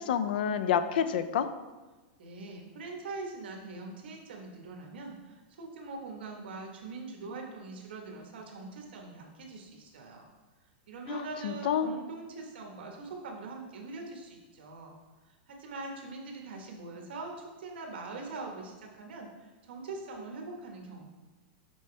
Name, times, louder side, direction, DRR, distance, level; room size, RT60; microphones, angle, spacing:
voice 1, 0.0-1.5 11.1-11.9, left 8 dB, 60° left, 11 dB, 0.5 m, -29 dB
voice 2, 2.2-10.3 10.9-15.0 15.3-21.1, right 3 dB, 75° right, 1 dB, 1.4 m, -42 dB
6.1 x 5.8 x 3.3 m, 1.2 s
supercardioid pair, 180°, 6 cm